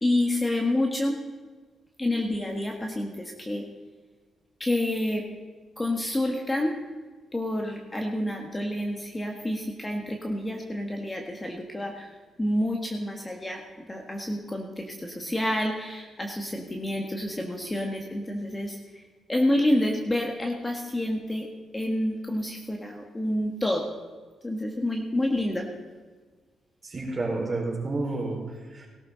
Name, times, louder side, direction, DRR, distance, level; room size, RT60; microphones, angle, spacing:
voice 1, 0.0-1.2 2.0-3.6 4.6-5.2 5.8-6.7 7.3-12.1 12.4-19.0 19.3-23.9 24.4-25.7, left 1 dB, 15° left, 2 dB, 1.6 m, -28 dB
voice 2, 26.8-28.9, right 2 dB, 30° right, -2 dB, 4.7 m, -30 dB
18.0 x 12.5 x 4.0 m, 1.4 s
cardioid pair, 105°, 0 cm